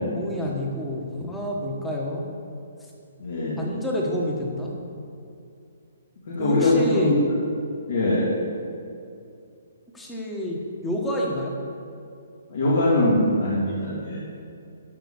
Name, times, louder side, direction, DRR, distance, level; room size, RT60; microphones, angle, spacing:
voice 1, 0.1-2.2 3.6-4.7 6.4-7.2 9.9-11.6, left 1 dB, 5° left, -2 dB, 1.2 m, -28 dB
voice 2, 3.2-3.6 6.3-7.1 7.9-8.3 12.5-14.2, left 1 dB, 65° left, -7 dB, 2.7 m, -22 dB
13.0 x 5.6 x 7.1 m, 2.5 s
hypercardioid pair, 170°, 0 cm